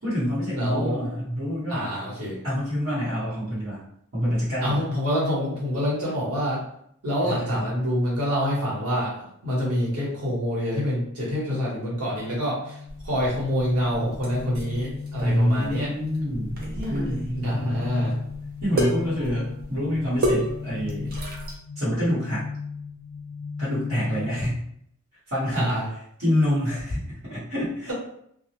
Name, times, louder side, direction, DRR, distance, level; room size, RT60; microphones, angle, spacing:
voice 1, 0.0-1.9 2.4-3.8 4.1-4.9 7.2-7.7 15.2-16.6 16.9-18.2 18.6-21.1 21.7-22.5 23.6-24.6 25.3-27.9, equal, 60° right, -11 dB, 1.2 m, -26 dB
voice 2, 0.6-1.0 1.7-2.4 4.6-6.6 7.0-12.7 13.0-15.9 17.4-18.1 25.5-25.8, equal, 80° right, -7 dB, 1.2 m, -26 dB
sound 1, 11.8-24.6, left 5 dB, 60° left, 0.4 m, -37 dB
sound 2, 12.9-21.6, right 1 dB, 45° right, 0.5 m, -32 dB
2.3 x 2.0 x 2.8 m, 0.70 s
head